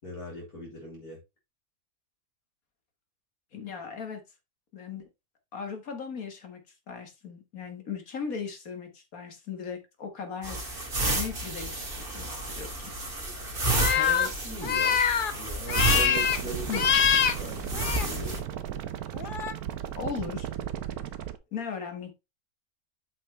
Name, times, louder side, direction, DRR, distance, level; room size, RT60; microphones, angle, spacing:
voice 1, 0.0-1.2 13.6-18.4, equal, 85° left, 4.3 m, -40 dB
voice 2, 3.5-4.2 4.7-5.0 5.5-6.6 6.9-10.6 11.1-12.3 12.6-12.8 16.7-16.8 20.0-20.5 21.5-22.1, left 6 dB, 70° left, 2.1 m, -37 dB
sound 1, 10.4-18.4, right 1 dB, 35° right, 2.5 m, -31 dB
sound 2, 13.7-14.3 14.6-15.3 15.7-16.4 16.7-17.3 17.7-18.1 19.1-19.5, left 7 dB, 45° left, 0.7 m, -24 dB
sound 3, 15.7-21.4, right 11 dB, 85° right, 1.3 m, -36 dB
8.0 x 6.0 x 3.3 m
omnidirectional pair, 1.5 m